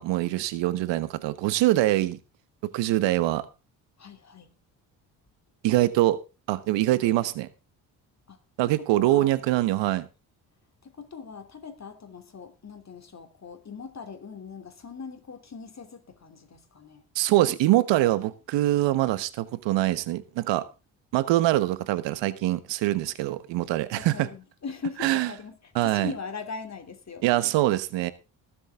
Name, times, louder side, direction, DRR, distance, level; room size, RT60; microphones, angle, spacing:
voice 1, 0.0-2.2 2.7-3.5 5.6-6.2 6.5-7.5 8.6-10.0 17.1-20.6 21.1-24.3 25.0-25.3 25.7-26.1 27.2-28.1, right 16 dB, 75° right, 1.2 m, -24 dB
voice 2, 4.0-4.5 8.3-9.3 10.8-17.0 24.0-27.4, left 5 dB, 35° left, 2.9 m, -40 dB
19.5 x 7.7 x 3.6 m
hypercardioid pair, 60°, 45 cm